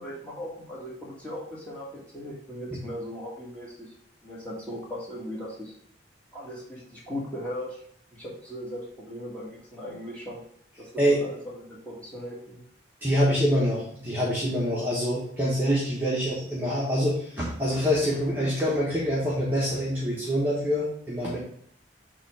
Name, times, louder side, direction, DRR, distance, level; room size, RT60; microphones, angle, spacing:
voice 1, 0.0-3.9 4.2-5.7 6.3-7.8 8.1-10.4 10.8-12.6, equal, 10° left, -5 dB, 1.8 m, -38 dB
voice 2, 13.0-21.4, equal, 10° right, -7 dB, 1.2 m, -25 dB
7.2 x 3.1 x 4.8 m, 0.64 s
head